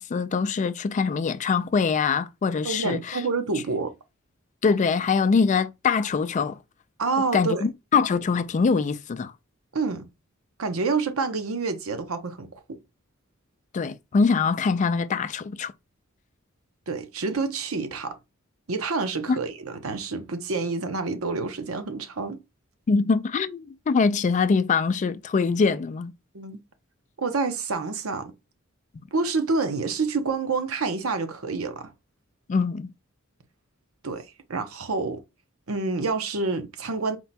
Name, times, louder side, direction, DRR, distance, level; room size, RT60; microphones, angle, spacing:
voice 1, 0.0-3.2 4.6-6.6 7.3-9.3 13.7-15.7 19.3-19.4 22.9-26.1 32.5-32.9, left 5 dB, 35° left, 0.3 m, -23 dB
voice 2, 2.6-3.9 7.0-7.6 9.7-10.1 10.6-12.5 16.9-18.2 18.7-22.4 26.3-26.6 27.2-28.3 29.1-31.9 34.0-35.2 35.7-37.2, right 4 dB, 90° right, 0.8 m, -28 dB
4.5 x 2.2 x 4.0 m
head